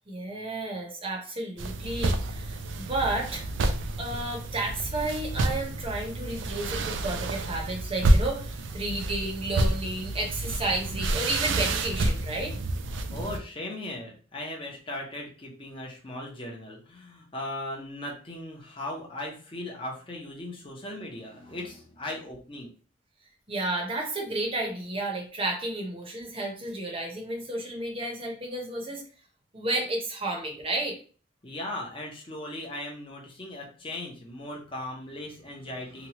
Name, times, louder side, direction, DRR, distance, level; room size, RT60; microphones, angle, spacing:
voice 1, 0.1-3.4 4.0-12.5 23.5-29.0 29.5-31.0, right 2 dB, 30° right, 0 dB, 0.8 m, -32 dB
sound 1, 1.6-13.4, right 2 dB, 65° right, 0.4 m, -29 dB
voice 2, 13.1-22.7 31.4-36.1, left 1 dB, 25° left, -1 dB, 0.7 m, -38 dB
2.9 x 2.3 x 2.8 m, 0.39 s
head